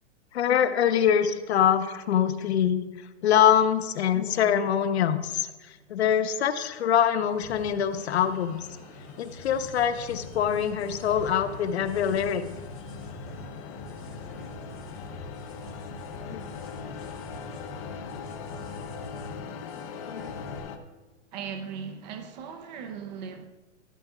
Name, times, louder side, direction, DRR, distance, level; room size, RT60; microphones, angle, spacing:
voice 1, 0.3-2.9 3.2-5.3 5.9-8.7 9.2-12.4 16.3-16.4 20.1-20.3, left 9 dB, 60° left, 1.0 m, -24 dB
sound 1, 6.7-20.8, left 6 dB, 25° left, 0.8 m, -42 dB
sound 2, 7.3-20.6, left 1 dB, 5° right, 0.3 m, -44 dB
voice 2, 21.3-23.4, right 7 dB, 35° right, 0.9 m, -38 dB
12.5 x 12.5 x 2.5 m
hypercardioid pair, 165°, 37 cm